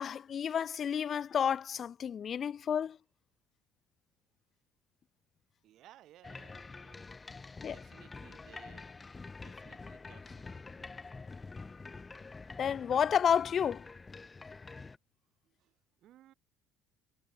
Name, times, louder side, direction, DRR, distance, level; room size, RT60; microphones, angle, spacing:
voice 1, 0.0-3.0 7.6-7.7 12.6-13.8, left 8 dB, 40° left, 0.3 m, -30 dB
voice 2, 5.6-7.1 7.7-8.9 9.4-11.3 15.4-16.3, right 13 dB, 55° right, 5.9 m, -61 dB
sound 1, 6.2-15.0, left 4 dB, 20° left, 1.6 m, -47 dB
figure-of-eight pair, 55°, 0 cm